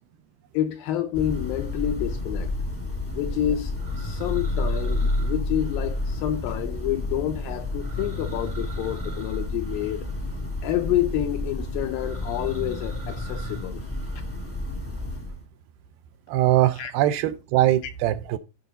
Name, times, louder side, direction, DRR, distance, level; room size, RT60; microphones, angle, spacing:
voice 1, 0.5-2.5 3.1-10.1 10.6-13.9 16.8-16.9, left 12 dB, 80° left, 2.1 m, -28 dB
Church bell, 1.1-15.4, left 2 dB, 10° left, 0.7 m, -30 dB
voice 2, 16.3-18.4, right 14 dB, 80° right, 2.3 m, -22 dB
14.5 x 5.4 x 3.9 m
omnidirectional pair, 4.7 m